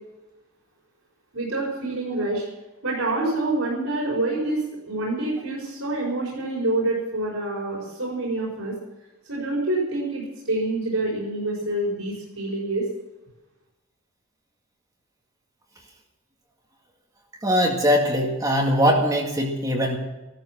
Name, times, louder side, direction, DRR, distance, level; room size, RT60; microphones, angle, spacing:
voice 1, 1.3-2.4 2.8-8.7 9.2-12.8, right 2 dB, 85° right, -4 dB, 5.1 m, -27 dB
voice 2, 17.4-20.0, equal, 15° right, 0 dB, 2.1 m, -21 dB
15.5 x 13.5 x 6.2 m, 1.1 s
head